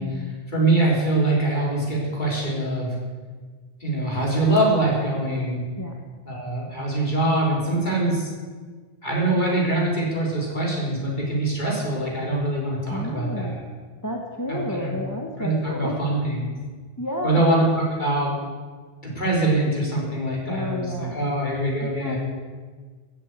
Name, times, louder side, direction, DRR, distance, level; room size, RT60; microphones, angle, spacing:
voice 1, 0.0-0.4 5.8-5.9 12.9-13.6 14.0-16.2 17.0-17.4 20.5-21.3 21.8-22.2, left 1 dB, 15° left, 2 dB, 1.2 m, -31 dB
voice 2, 0.5-2.9 3.8-5.6 6.2-8.3 9.0-13.6 14.5-14.9 15.4-16.4 17.2-18.3 19.0-22.2, right 2 dB, 45° left, -3 dB, 4.3 m, -23 dB
15.5 x 8.5 x 8.1 m, 1.5 s
omnidirectional pair, 1.1 m